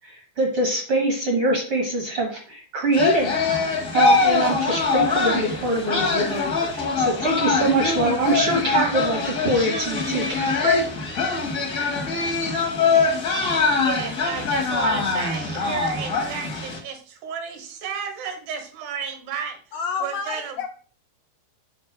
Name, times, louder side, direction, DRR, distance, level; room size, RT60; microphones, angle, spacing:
voice 1, 0.0-3.3 3.9-10.8, right 1 dB, 70° right, 2 dB, 1.3 m, -24 dB
sound 1, 2.9-16.8, left 4 dB, 65° left, 0.8 m, -23 dB
voice 2, 13.8-19.6 20.0-20.6, right 7 dB, 85° right, 6 dB, 3.4 m, -32 dB
voice 3, 19.7-20.7, left 6 dB, 80° left, 3 dB, 1.9 m, -29 dB
7.8 x 4.0 x 6.0 m, 0.42 s
omnidirectional pair, 4.7 m